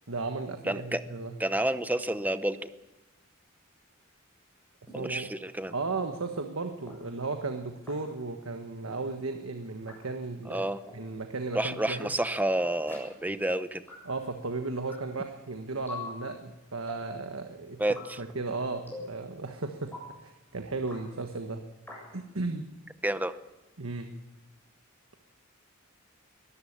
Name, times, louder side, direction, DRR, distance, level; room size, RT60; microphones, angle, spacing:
voice 1, 0.1-1.3 4.9-5.3 5.7-10.6 10.9-12.1 14.0-17.8 18.2-19.9 20.2-21.6 22.1-22.7 23.8-24.1, right 3 dB, 85° right, 6 dB, 1.4 m, -35 dB
voice 2, 0.6-1.0 1.4-2.7 4.9-5.7 10.5-10.8 11.5-13.8 17.8-18.2 23.0-23.3, right 1 dB, 10° right, 12 dB, 0.8 m, -29 dB
sound 1, 4.9-5.0 5.9-6.0 6.9-7.0 7.9-8.0 8.9-9.0 9.9-10.0 10.9-11.0 11.9-12.0 12.9-13.0 13.9-14.0 14.9-15.0 15.9-16.1 16.9-17.1 17.9-18.1 18.9-19.1 19.9-20.1 20.9-21.0 21.9-22.0, left 3 dB, 10° left, 7.8 m, -41 dB
22.0 x 14.0 x 8.7 m, 1.0 s
head